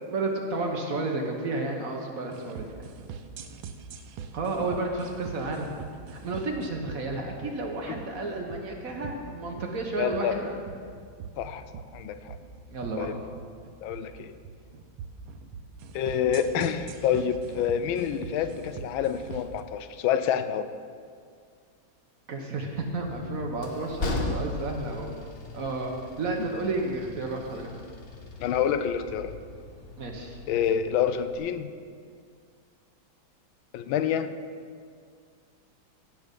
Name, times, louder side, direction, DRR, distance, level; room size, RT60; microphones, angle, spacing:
voice 1, 0.1-2.8 4.3-5.7 6.1-10.7 12.7-13.1 22.3-25.1 25.5-27.7 30.0-30.4, right 2 dB, 50° right, 2 dB, 1.3 m, -32 dB
sound 1, 2.3-19.6, right 6 dB, 80° right, 1.5 m, -43 dB
voice 2, 10.0-10.4 11.4-11.6 11.9-12.4 13.0-13.1 13.8-14.3 15.9-20.7 28.4-29.4 30.5-31.7 33.7-34.3, left 8 dB, 85° left, 11 dB, 1.4 m, -27 dB
Train, 22.8-31.4, left 2 dB, 40° left, 0.9 m, -38 dB
16.5 x 6.2 x 5.3 m, 2.2 s
omnidirectional pair, 2.2 m